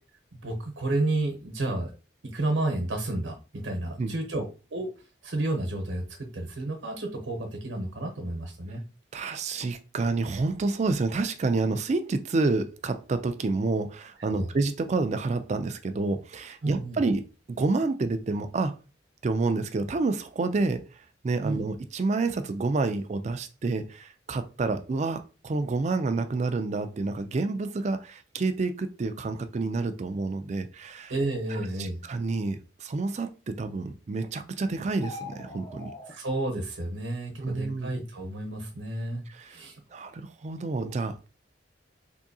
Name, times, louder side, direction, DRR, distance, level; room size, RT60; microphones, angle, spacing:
voice 1, 0.4-1.9 2.2-4.9 5.2-6.0 6.3-8.8 14.3-14.5 16.6-17.0 21.4-21.6 31.1-32.0 36.1-39.2 39.5-39.8, right 2 dB, 75° right, 0.9 m, -31 dB
voice 2, 9.1-18.7 19.2-20.9 21.2-31.1 31.5-35.9 37.4-37.9 39.3-39.6 39.9-41.3, right 3 dB, 35° right, 0.3 m, -29 dB
sound 1, 34.9-36.1, left 3 dB, 20° left, 0.7 m, -41 dB
3.5 x 2.7 x 2.7 m
head